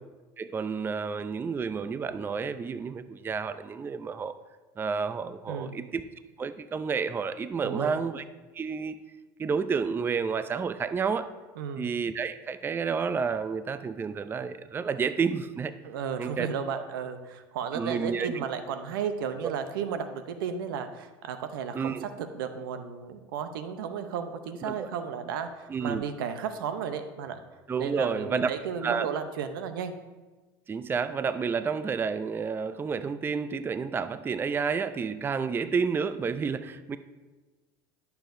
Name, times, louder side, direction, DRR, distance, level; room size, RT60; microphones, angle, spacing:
voice 1, 0.4-4.3 4.8-6.0 6.4-8.2 8.5-9.0 9.4-11.3 11.8-15.7 16.2-16.5 17.7-18.3 19.4-19.5 21.7-22.0 24.6-24.9 25.7-26.0 27.7-28.5 28.8-29.1 30.7-37.0, right 5 dB, 20° right, 12 dB, 0.4 m, -30 dB
voice 2, 5.5-5.8 7.6-8.0 11.6-11.9 15.8-27.4 27.8-29.9, right 7 dB, 85° right, 9 dB, 0.7 m, -34 dB
11.0 x 6.9 x 2.6 m, 1.2 s
supercardioid pair, 95°, 11 cm